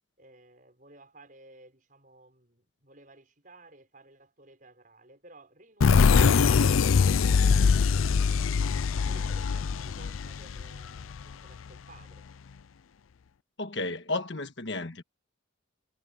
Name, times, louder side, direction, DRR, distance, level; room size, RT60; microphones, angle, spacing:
voice 1, 0.2-6.6 7.1-7.9 8.6-12.2, right 2 dB, 40° right, 6.2 m, -55 dB
sound 1, 5.8-11.3, left 5 dB, 85° left, 0.5 m, -23 dB
voice 2, 13.6-15.0, left 2 dB, 60° left, 1.5 m, -33 dB
head